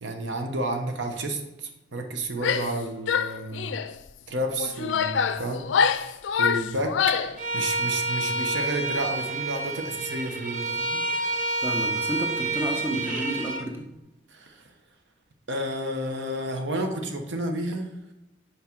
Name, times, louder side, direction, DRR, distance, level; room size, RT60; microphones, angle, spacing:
voice 1, 0.0-3.7 4.3-5.7 6.0-11.3 14.3-14.7 15.5-17.9, right 1 dB, 80° right, 5 dB, 0.9 m, -31 dB
Female speech woman speaking / Yell, 2.3-2.8 3.1-3.9 4.6-7.4, left 6 dB, 85° left, 0.4 m, -25 dB
Bowed string instrument, 7.4-13.7, right 2 dB, 45° right, 0.8 m, -29 dB
voice 2, 11.6-13.8, right 1 dB, 10° right, 1 dB, 0.9 m, -31 dB
6.0 x 4.9 x 4.5 m, 0.94 s
head